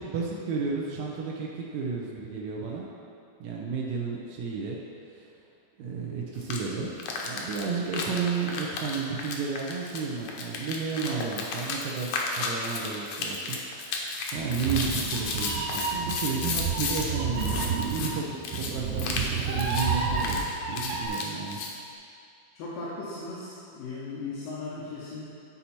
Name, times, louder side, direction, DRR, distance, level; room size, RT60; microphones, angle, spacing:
voice 1, 0.0-2.9 3.4-4.8 5.1-5.2 5.8-6.9 7.2-12.1 12.4-13.6 14.3-21.6, right 5 dB, 75° right, -3 dB, 1.9 m, -32 dB
sound 1, 6.4-6.6 7.0-17.1 17.4-18.1 18.4-18.7 19.0-19.3 19.6-19.9 20.2-21.7, left 4 dB, 75° left, 1.9 m, -33 dB
Meow, 14.4-21.1, right 5 dB, 90° right, 2.5 m, -30 dB
voice 2, 22.5-25.3, left 3 dB, 90° left, -7 dB, 2.7 m, -37 dB
11.0 x 4.2 x 4.3 m, 2.5 s
omnidirectional pair, 3.8 m